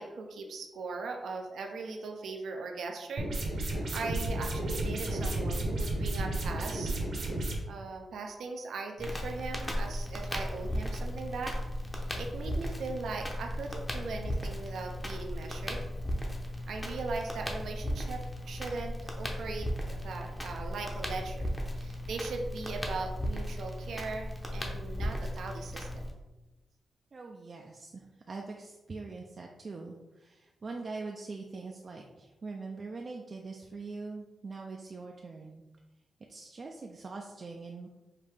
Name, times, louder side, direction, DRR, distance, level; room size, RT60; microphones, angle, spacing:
voice 1, 0.0-6.9 7.7-11.5 11.9-15.8 16.7-21.5 21.8-26.1, right 3 dB, 85° right, 3 dB, 0.6 m, -39 dB
sound 1, 3.2-7.6, right 1 dB, 65° right, 1.0 m, -32 dB
Crackle, 9.0-26.1, equal, 15° left, 0.7 m, -36 dB
voice 2, 27.1-35.6 36.3-37.9, right 3 dB, 40° right, 1 dB, 0.4 m, -43 dB
5.0 x 2.7 x 3.4 m, 1.1 s
wide cardioid pair, 115°, 0 cm